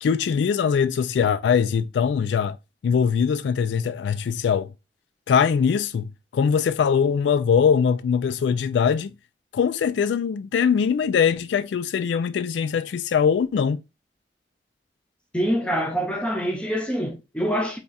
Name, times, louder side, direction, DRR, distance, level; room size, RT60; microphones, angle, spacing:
voice 1, 0.0-2.6 2.8-4.7 5.3-9.1 9.5-13.8, left 7 dB, 90° left, 0.3 m, -22 dB
voice 2, 15.3-17.8, equal, 5° left, 0.6 m, -25 dB
3.5 x 2.3 x 4.0 m
head